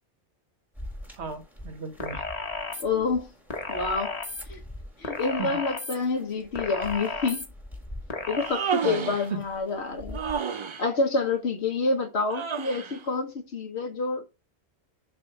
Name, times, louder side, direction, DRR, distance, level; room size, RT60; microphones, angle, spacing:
sound 1, 0.7-10.3, left 1 dB, ahead, 1.7 m, -45 dB
voice 1, 1.2-2.3 5.4-5.6 8.7-9.4, right 4 dB, 75° right, 1.3 m, -36 dB
sound 2, 2.0-2.8 3.5-4.4 5.0-5.9 6.5-7.5 8.1-8.5, left 3 dB, 35° left, 1.2 m, -33 dB
voice 2, 2.8-3.3 3.7-4.2 4.5-4.6 5.0-7.4 8.3-10.2 10.5-14.3, left 4 dB, 70° left, 1.3 m, -28 dB
Human voice, 8.3-9.3 10.1-10.9 12.3-13.0, right 7 dB, 50° right, 0.3 m, -31 dB
7.1 x 3.5 x 5.3 m
omnidirectional pair, 1.2 m